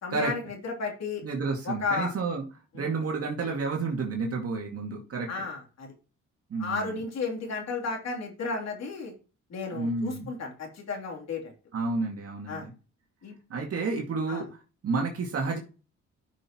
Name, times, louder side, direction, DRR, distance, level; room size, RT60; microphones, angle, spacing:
voice 1, 0.0-1.2 1.6-2.1 2.7-3.0 5.3-5.9 6.6-9.1 9.5-11.5 12.5-12.7 13.2-13.3 14.3-14.4, left 4 dB, 60° left, 1 dB, 3.3 m, -33 dB
voice 2, 1.2-2.4 2.7-5.3 6.5-7.0 9.7-10.3 11.7-12.7 13.5-14.5 14.8-15.6, right 3 dB, 50° right, 0 dB, 2.1 m, -30 dB
12.5 x 6.2 x 3.0 m, 0.35 s
cardioid pair, 90°, 30 cm